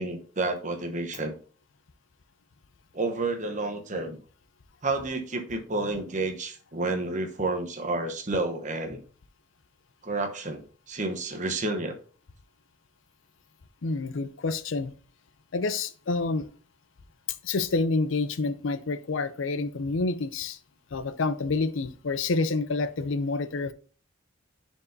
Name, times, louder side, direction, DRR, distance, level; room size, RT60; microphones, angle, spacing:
voice 1, 0.0-1.3 2.9-4.2 4.8-9.0 10.0-12.0, right 2 dB, 35° right, 5 dB, 1.0 m, -30 dB
voice 2, 13.8-14.9 15.5-16.5 17.4-20.6 20.9-23.7, left 3 dB, 70° left, 13 dB, 0.5 m, -28 dB
9.8 x 4.6 x 2.7 m, 0.42 s
head